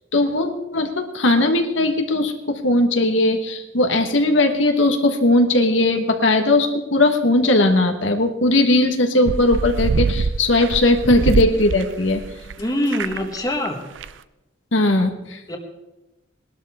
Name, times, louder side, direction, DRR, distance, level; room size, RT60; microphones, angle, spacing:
voice 1, 0.1-12.2 14.7-15.6, left 2 dB, 80° left, 5 dB, 1.3 m, -18 dB
sound 1, 9.3-12.6 12.8-13.4 13.7-13.8 14.0-14.1, right 4 dB, 75° right, 0.5 m, -24 dB
voice 2, 12.6-13.8 15.5-15.6, left 1 dB, 20° left, 2 dB, 1.4 m, -24 dB
19.5 x 12.0 x 3.6 m, 0.99 s
head